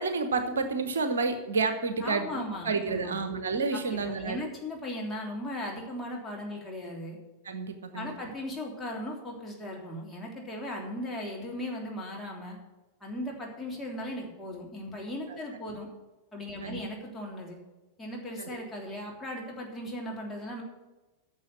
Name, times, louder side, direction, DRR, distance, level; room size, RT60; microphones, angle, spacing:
voice 1, 0.0-4.4 7.4-8.1 15.3-15.4 16.6-16.8 18.4-18.5, right 4 dB, 65° right, 9 dB, 1.0 m, -30 dB
voice 2, 2.0-3.2 3.7-7.2 7.9-12.6 13.0-15.9 16.3-17.6 18.0-20.6, left 1 dB, 10° left, -2 dB, 3.2 m, -37 dB
10.0 x 6.9 x 8.4 m, 1.1 s
figure-of-eight pair, 90°, 0 cm